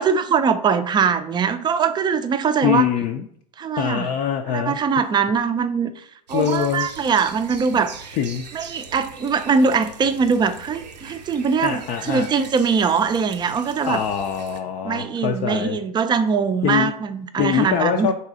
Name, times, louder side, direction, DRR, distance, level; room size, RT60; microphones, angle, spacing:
voice 1, 0.0-2.9 3.6-4.1 4.5-8.2 8.5-14.0 14.8-18.1, right 6 dB, 20° right, 10 dB, 0.4 m, -22 dB
voice 2, 2.6-3.3 3.8-4.8 6.3-6.9 8.2-8.4 11.6-12.3 13.9-15.8 16.6-16.9 17.4-18.1, left 9 dB, 50° left, 3 dB, 0.5 m, -23 dB
sound 1, 6.3-14.6, right 5 dB, 85° right, 0.6 m, -41 dB
3.9 x 2.8 x 4.7 m, 0.66 s
hypercardioid pair, 90°, 21 cm